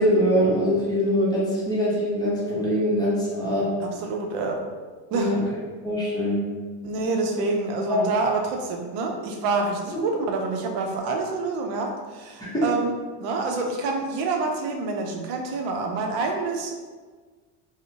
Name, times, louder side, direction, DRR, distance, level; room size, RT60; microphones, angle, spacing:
voice 1, 0.0-3.7 5.1-5.4 5.8-6.4 7.9-8.1 9.9-10.0 12.4-12.7, equal, 10° left, -8 dB, 0.6 m, -23 dB
voice 2, 3.8-4.6 5.1-5.4 6.8-12.9 13.2-16.8, right 3 dB, 85° right, 2 dB, 0.6 m, -27 dB
2.7 x 2.0 x 2.6 m, 1.4 s
cardioid pair, 130°, 47 cm